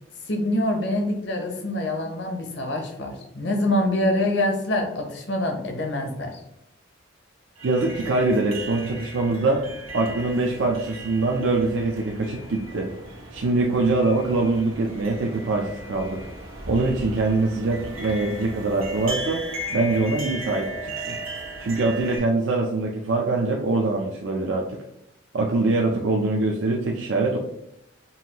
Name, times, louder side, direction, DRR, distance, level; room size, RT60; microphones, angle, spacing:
voice 1, 0.3-6.4, left 1 dB, 55° left, 3 dB, 0.8 m, -25 dB
voice 2, 7.6-9.7 9.9-12.9 13.3-16.2 16.7-19.4 19.7-21.2 21.6-24.8 25.3-27.4, right 2 dB, 60° right, 0 dB, 0.4 m, -23 dB
sound 1, 7.6-22.2, right 1 dB, 85° right, 1.2 m, -37 dB
5.5 x 2.6 x 2.9 m, 0.81 s
head